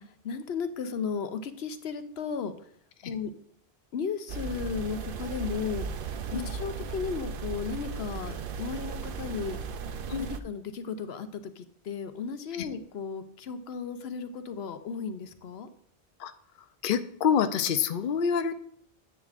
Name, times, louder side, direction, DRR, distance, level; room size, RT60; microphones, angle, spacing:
voice 1, 0.0-2.7 3.0-3.3 3.9-5.9 6.3-9.6 10.2-15.7, left 6 dB, 80° left, 10 dB, 1.0 m, -35 dB
sound 1, 4.3-10.4, right 5 dB, 60° right, 0.7 m, -36 dB
voice 2, 16.8-18.5, left 7 dB, 60° left, 9 dB, 0.7 m, -26 dB
10.5 x 8.2 x 2.5 m, 0.63 s
omnidirectional pair, 1.1 m